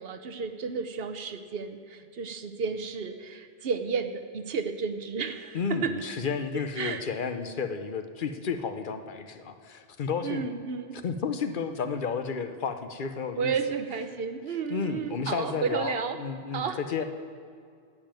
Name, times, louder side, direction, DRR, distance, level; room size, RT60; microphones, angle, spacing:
voice 1, 0.0-5.9 6.8-7.0 10.2-11.0 13.4-16.2 16.5-17.0, right 5 dB, 65° right, 9 dB, 1.0 m, -32 dB
voice 2, 5.5-10.6 10.9-13.5 14.7-17.0, left 5 dB, 55° left, 8 dB, 0.9 m, -32 dB
12.0 x 7.6 x 9.0 m, 2.2 s
omnidirectional pair, 1.1 m